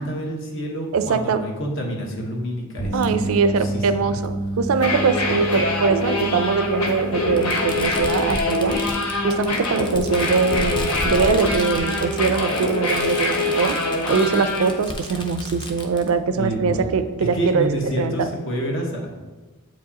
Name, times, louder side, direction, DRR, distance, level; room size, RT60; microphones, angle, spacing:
voice 1, 0.0-4.2 16.4-16.8 17.2-19.1, right 1 dB, 60° left, 0 dB, 1.1 m, -28 dB
voice 2, 0.9-1.4 2.9-8.8 9.2-13.8 14.1-17.7 18.0-18.3, right 5 dB, 65° right, 10 dB, 0.4 m, -22 dB
sound 1, 2.8-15.0 15.4-15.6 17.8-17.9, right 1 dB, 40° left, 1.0 m, -32 dB
Fireworks, 3.0-3.1 4.2-4.3 5.6-5.7 7.4-16.1, left 1 dB, 20° left, 0.5 m, -33 dB
sound 2, 4.7-14.7, left 2 dB, 85° left, 0.9 m, -24 dB
7.7 x 4.7 x 2.9 m, 1.2 s
head